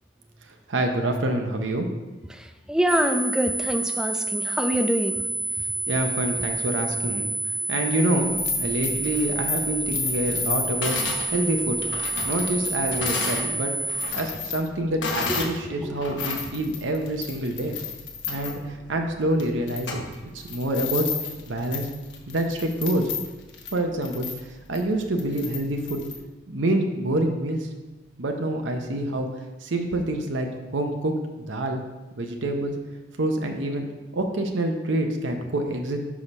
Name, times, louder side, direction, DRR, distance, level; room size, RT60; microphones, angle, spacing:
voice 1, 0.7-1.9 5.9-7.3 7.7-11.0 11.3-11.8 12.2-13.7 14.1-17.8 18.3-20.0 20.5-21.1 21.5-21.9 22.3-23.0 23.7-24.3 24.7-26.0 26.5-27.7 28.2-29.3 29.6-30.5 30.7-31.8 32.2-32.7 33.2-33.8 34.1-36.0, right 1 dB, 85° right, 4 dB, 0.7 m, -26 dB
voice 2, 2.7-5.2 15.9-16.0, equal, 5° right, 6 dB, 0.4 m, -24 dB
sound 1, 2.9-14.1, right 2 dB, 40° right, 2.6 m, -29 dB
sound 2, 8.2-13.5 13.8-15.6 15.9-26.2, left 5 dB, 75° left, 1.0 m, -33 dB
5.6 x 4.9 x 5.4 m, 1.1 s
head